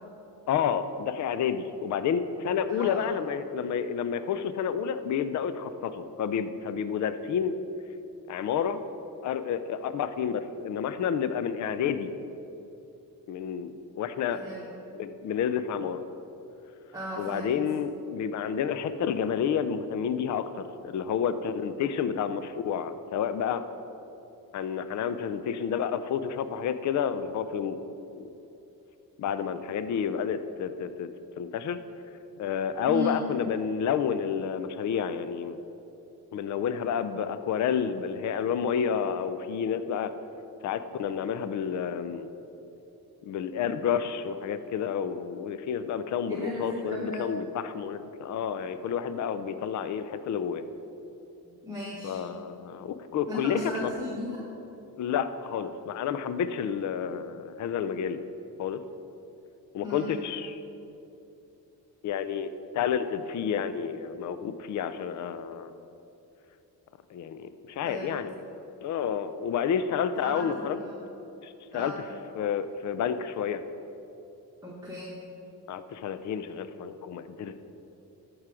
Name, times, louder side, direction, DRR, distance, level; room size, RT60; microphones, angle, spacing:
voice 1, 0.5-7.6 8.3-8.8 9.2-12.1 13.3-14.4 14.9-16.0 17.2-23.6 24.5-27.8 28.1-28.3 29.2-31.1 31.4-31.8 32.4-35.6 36.3-40.1 40.6-42.3 43.2-50.6 52.0-53.9 55.0-58.2 58.6-58.8 59.7-60.6 62.0-65.7 67.1-68.3 68.8-70.8 71.4-71.9 72.4-73.6 75.7-77.6, left 7 dB, 50° left, 12 dB, 0.5 m, -30 dB
voice 2, 2.7-3.1 14.3-14.7 16.9-17.5 32.9-33.2 46.3-47.3 51.4-52.2 53.3-54.5 59.8-60.2 67.8-68.1 70.2-70.9 71.7-72.0 74.6-75.2, left 1 dB, 10° right, -5 dB, 1.3 m, -36 dB
13.5 x 4.8 x 4.9 m, 2.9 s
cardioid pair, 110°, 38 cm